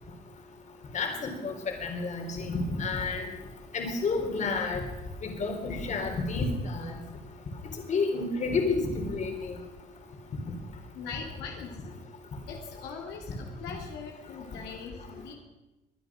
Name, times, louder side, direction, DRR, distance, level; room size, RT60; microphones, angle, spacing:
voice 1, 0.9-1.5 1.8-3.3 3.7-4.8 5.2-7.0 7.9-9.5, left 3 dB, 45° left, 4 dB, 3.7 m, -30 dB
voice 2, 10.9-11.8 12.5-15.3, left 6 dB, 85° left, 1 dB, 2.5 m, -41 dB
23.0 x 9.8 x 6.2 m, 1.0 s
cardioid pair, 110°, 17 cm